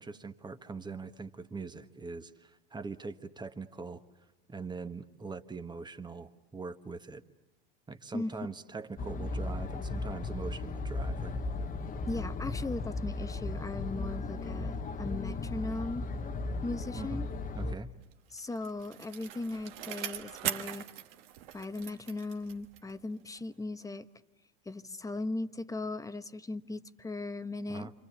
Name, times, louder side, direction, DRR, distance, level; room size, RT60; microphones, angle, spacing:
voice 1, 0.0-4.0 4.5-7.2 7.9-11.4 16.9-17.3 17.5-17.9 27.7-27.9, right 4 dB, 15° right, 9 dB, 1.4 m, -42 dB
sound 1, 9.0-17.8, left 3 dB, 30° left, 1.2 m, -36 dB
voice 2, 12.1-16.0 16.6-17.3 18.3-20.9 21.5-24.1 24.6-27.9, left 2 dB, 10° left, 12 dB, 1.1 m, -38 dB
Bicycle, 18.1-23.0 23.4-23.5, right 11 dB, 80° right, 1.6 m, -41 dB
28.5 x 26.0 x 7.1 m, 1.1 s
supercardioid pair, 105°, 29 cm